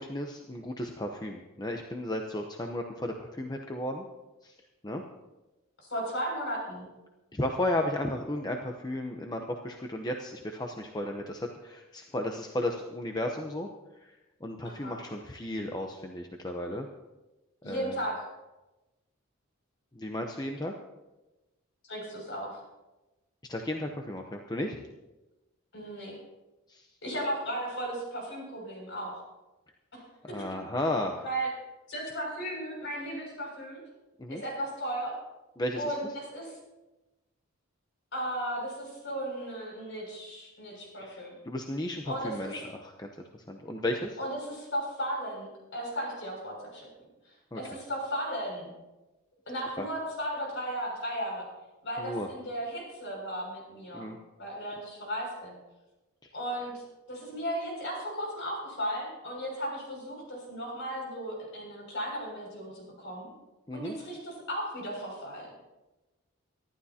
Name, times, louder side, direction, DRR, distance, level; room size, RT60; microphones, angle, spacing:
voice 1, 0.0-4.0 4.4-4.5 4.8-5.0 7.3-13.7 14.0-14.1 14.4-16.9 17.6-18.0 19.9-20.7 23.5-24.8 26.7-26.9 30.3-31.2 34.2-34.4 35.6-35.9 41.0-41.2 41.5-43.1 43.5-44.2 47.5-47.6 49.8-49.9 52.0-52.3 53.9-54.2 56.2-56.3 63.7-64.0, left 1 dB, 20° left, 2 dB, 0.8 m, -34 dB
voice 2, 5.9-6.9 14.6-15.0 17.6-18.2 21.8-22.6 25.7-26.2 27.0-29.2 29.9-30.0 30.3-30.5 31.2-31.5 31.9-33.8 34.3-35.2 35.7-36.5 38.1-41.3 42.0-42.5 44.2-46.9 47.5-48.7 49.5-51.5 51.8-54.1 54.4-55.5 56.3-63.3 63.7-65.5, equal, 55° left, -1 dB, 6.4 m, -35 dB
24.5 x 12.0 x 2.9 m, 1.1 s
head